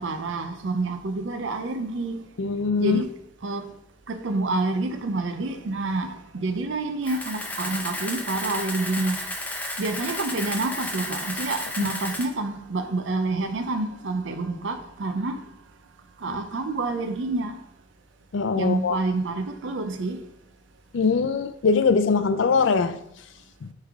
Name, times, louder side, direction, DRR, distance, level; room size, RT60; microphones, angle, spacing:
voice 1, 0.0-2.2 2.8-3.1 3.4-3.6 4.1-9.2 9.8-15.4 16.2-17.6 18.6-20.2, right 2 dB, 75° right, 0.5 m, -28 dB
voice 2, 2.4-3.0 11.8-11.9 16.3-16.4 18.3-19.0 20.9-23.0 23.6-23.7, left 5 dB, 75° left, 0.4 m, -22 dB
Camera, 7.0-12.3, left 1 dB, 10° left, 0.6 m, -33 dB
9.1 x 3.3 x 3.6 m
head